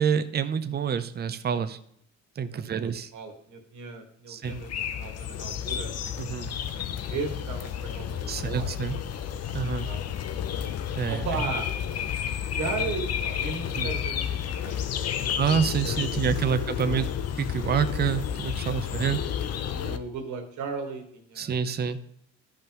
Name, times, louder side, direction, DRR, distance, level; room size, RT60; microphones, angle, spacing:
voice 1, 0.0-1.8 2.4-3.1 4.3-4.6 6.2-6.5 8.3-9.0 9.5-9.9 11.0-11.3 13.8-13.9 15.4-17.1 17.4-19.2 21.4-22.0, right 7 dB, 35° right, 10 dB, 0.6 m, -27 dB
voice 2, 2.5-8.7 9.8-10.2 11.1-11.7 12.5-15.6 15.8-16.2 16.5-17.1 18.9-19.2 19.7-21.6, right 4 dB, 75° right, 3 dB, 1.7 m, -37 dB
sound 1, 4.4-20.0, left 9 dB, 55° left, 0.7 m, -31 dB
13.0 x 5.5 x 3.0 m, 0.70 s
cardioid pair, 90°, 30 cm